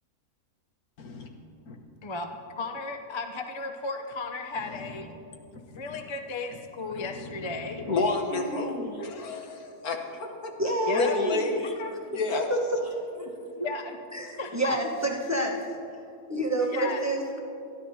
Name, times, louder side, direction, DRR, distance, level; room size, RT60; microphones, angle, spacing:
voice 1, 1.0-1.3 1.7-1.8 4.6-4.7 5.5-6.0 7.0-10.5 10.9-11.7 12.1-12.5, left 3 dB, 85° left, 3 dB, 1.7 m, -31 dB
voice 2, 2.0-5.1 5.7-7.9 10.9-11.2 11.8-11.9 13.5-14.0 14.4-14.8 16.7-17.1, left 3 dB, 30° left, 4 dB, 0.5 m, -35 dB
voice 3, 8.3-9.0 10.6-11.4 12.1-12.2 12.5-12.6 13.1-13.3 14.1-15.6 16.3-17.4, right 1 dB, 10° right, -1 dB, 1.1 m, -28 dB
26.5 x 11.0 x 2.8 m, 2.7 s
omnidirectional pair, 1.5 m